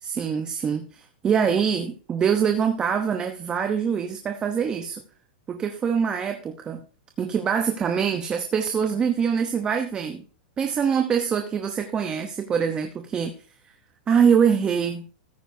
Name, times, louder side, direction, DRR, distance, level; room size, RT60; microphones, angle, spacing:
voice 1, 0.0-5.0 5.5-6.8 7.2-10.2 10.6-13.3 14.1-15.1, right 7 dB, 15° right, 6 dB, 0.9 m, -24 dB
14.0 x 9.9 x 2.8 m, 0.37 s
supercardioid pair, 155°, 5 cm